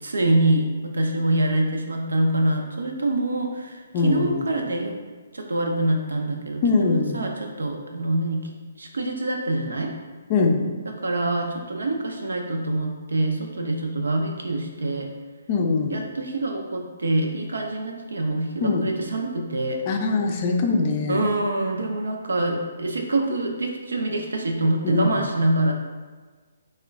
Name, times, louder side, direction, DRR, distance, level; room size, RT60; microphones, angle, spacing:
voice 1, 0.0-5.0 5.3-8.5 8.8-9.9 11.0-15.1 15.9-19.8 21.1-25.7, right 1 dB, 75° right, 2 dB, 0.5 m, -25 dB
voice 2, 3.9-4.4 6.6-7.3 10.3-10.7 15.5-16.0 18.6-19.0 19.9-21.3 24.8-25.1, left 4 dB, 35° left, 2 dB, 0.4 m, -22 dB
3.6 x 2.2 x 3.4 m, 1.4 s
figure-of-eight pair, 135°, 0 cm